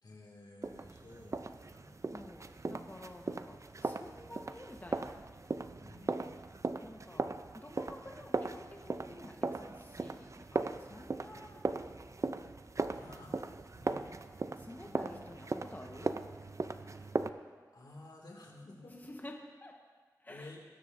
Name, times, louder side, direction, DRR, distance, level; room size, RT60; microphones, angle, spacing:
voice 1, 0.0-1.9 5.8-6.3 12.9-14.2 14.8-15.3 16.8-17.2 17.7-19.0 20.3-20.6, left 2 dB, 75° left, -1 dB, 2.3 m, -53 dB
sound 1, 0.6-17.3, right 3 dB, 45° right, 0.5 m, -39 dB
voice 2, 2.1-5.1 6.8-7.2 7.5-11.6 14.6-16.1 19.0-19.3 19.6-19.7 20.2-20.5, left 1 dB, 25° left, 1 dB, 1.3 m, -50 dB
20.5 x 9.8 x 2.7 m, 1.5 s
cardioid pair, 45°, 7 cm